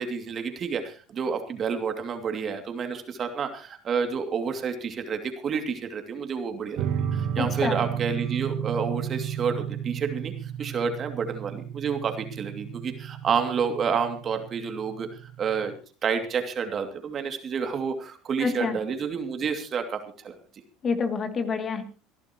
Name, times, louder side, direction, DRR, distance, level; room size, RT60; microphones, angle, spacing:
voice 1, 0.0-6.8 7.1-15.7 16.0-20.3, right 6 dB, 40° right, 6 dB, 2.6 m, -29 dB
sound 1, 6.8-15.7, right 9 dB, 60° right, 1.7 m, -33 dB
voice 2, 7.4-7.9 18.4-18.8 20.8-21.8, left 5 dB, 35° left, 6 dB, 2.6 m, -27 dB
26.5 x 11.5 x 3.0 m, 0.36 s
hypercardioid pair, 80°, 0 cm